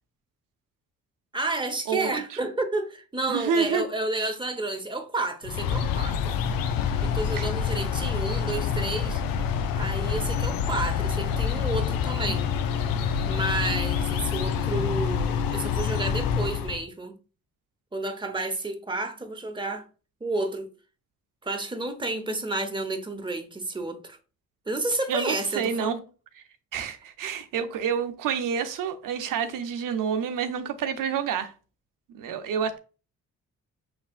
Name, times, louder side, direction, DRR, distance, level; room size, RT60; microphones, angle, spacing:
voice 1, 1.3-6.3 7.0-9.2 9.8-12.5 13.3-17.1 17.9-19.8 20.2-20.7 21.4-24.2 24.7-26.0, right 2 dB, 15° right, 0.9 m, -31 dB
voice 2, 1.9-2.2 3.3-3.9 7.4-7.5 25.1-26.0 26.7-31.5 32.1-32.8, right 7 dB, 75° right, 0.7 m, -28 dB
sound 1, 5.4-16.8, left 7 dB, 90° left, 0.6 m, -27 dB
5.9 x 3.3 x 2.4 m
cardioid pair, 75°, 33 cm